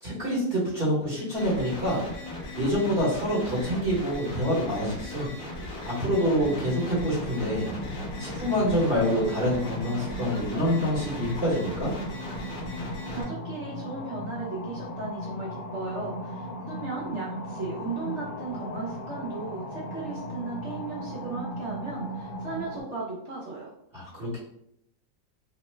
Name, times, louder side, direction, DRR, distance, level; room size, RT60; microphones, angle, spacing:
voice 1, 0.0-2.0 2.5-5.3 5.8-7.7 8.2-11.9 23.9-24.4, equal, 40° right, -8 dB, 1.0 m, -26 dB
sound 1, 1.4-13.2, left 1 dB, 45° left, 0.8 m, -38 dB
sound 2, 6.4-22.8, equal, 70° left, 1.0 m, -37 dB
voice 2, 13.1-23.7, right 4 dB, 65° right, -4 dB, 0.7 m, -36 dB
2.9 x 2.1 x 3.1 m, 0.73 s
omnidirectional pair, 1.8 m